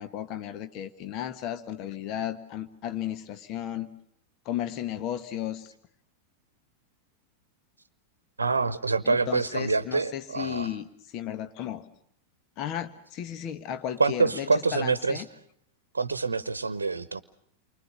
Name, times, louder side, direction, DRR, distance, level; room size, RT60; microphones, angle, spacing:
voice 1, 0.0-3.9 4.4-5.7 9.0-11.8 12.6-15.2, left 11 dB, 40° left, 10 dB, 1.4 m, -34 dB
voice 2, 8.4-10.7 14.0-15.2 15.9-17.2, right 4 dB, 75° right, 15 dB, 1.0 m, -26 dB
29.5 x 25.0 x 6.8 m, 0.70 s
figure-of-eight pair, 90°, 0 cm